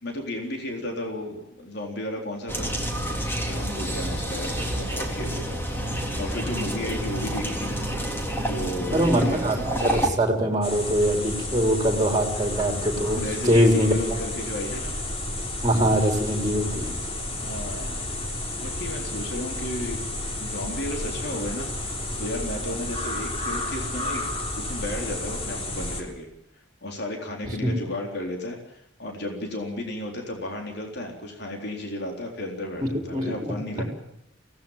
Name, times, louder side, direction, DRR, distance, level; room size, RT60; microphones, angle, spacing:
voice 1, 0.0-2.7 3.5-5.6 6.2-7.7 8.4-9.4 13.1-14.9 17.4-18.1 18.6-20.0 20.4-24.3 24.6-26.3 26.8-33.8, left 1 dB, 55° left, 2 dB, 3.9 m, -33 dB
sound 1, 2.5-10.1, right 1 dB, 10° left, 3.2 m, -29 dB
voice 2, 8.9-13.9 15.6-16.9 27.6-27.7 33.1-33.5, equal, 20° right, 3 dB, 3.9 m, -23 dB
sound 2, 10.6-26.0, left 1 dB, 30° left, 3.5 m, -31 dB
23.5 x 18.0 x 7.4 m, 0.82 s
head